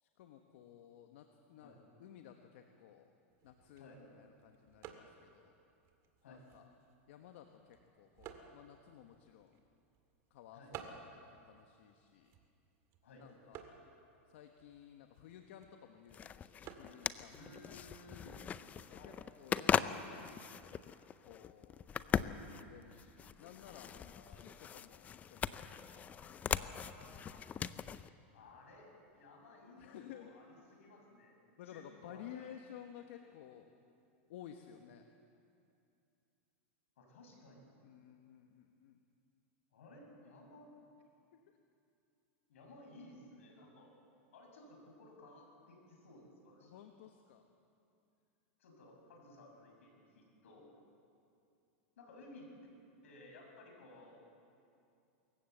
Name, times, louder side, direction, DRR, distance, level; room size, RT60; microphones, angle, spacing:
voice 1, 0.0-1.7 2.0-3.1 3.4-5.6 6.3-6.7 7.1-9.6 10.3-10.6 11.1-12.3 13.2-13.7 14.3-17.4 17.7-18.1 18.9-20.8 21.2-21.9 22.4-26.4 29.8-30.3 31.6-33.7 34.3-35.0 37.8-39.0 46.6-47.5, left 10 dB, 65° left, 5 dB, 1.3 m, -55 dB
sound 1, 3.3-18.8, right 7 dB, 40° right, 2.1 m, -57 dB
sound 2, 16.1-28.1, left 8 dB, 20° left, 0.5 m, -40 dB
voice 2, 17.3-18.4 18.9-19.2 24.1-24.4 26.5-27.4 28.3-28.9 29.1-31.3 31.6-32.4 37.0-37.7 39.7-40.7 42.5-43.9 44.3-46.8 48.6-50.7 52.0-52.5 53.0-54.2, left 2 dB, 85° left, 1 dB, 6.6 m, -57 dB
25.0 x 14.5 x 7.9 m, 2.6 s
supercardioid pair, 135°, 7 cm